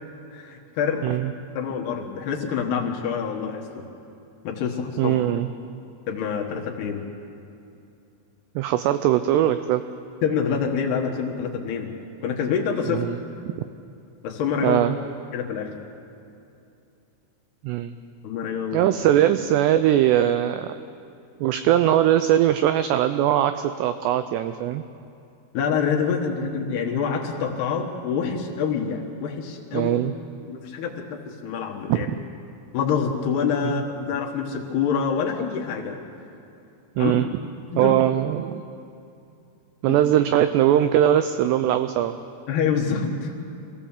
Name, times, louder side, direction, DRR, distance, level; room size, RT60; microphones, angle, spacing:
voice 1, 0.3-1.0 1.6-3.6 4.4-5.1 6.1-7.0 10.2-11.9 12.2-13.0 14.2-14.8 15.3-15.7 18.2-18.9 25.5-29.9 30.5-32.1 32.7-36.0 37.0-37.1 37.7-37.9 39.9-40.0 42.5-43.3, left 6 dB, 65° left, 0 dB, 3.1 m, -26 dB
voice 2, 1.0-1.3 5.0-5.5 8.6-9.8 12.9-13.2 14.6-15.0 17.6-17.9 18.7-20.7 21.4-24.8 29.7-30.1 31.9-32.2 33.6-33.8 37.0-37.3 37.8-38.6 39.8-42.2, right 12 dB, 90° right, 10 dB, 2.4 m, -21 dB
24.5 x 16.5 x 7.2 m, 2.7 s
omnidirectional pair, 5.5 m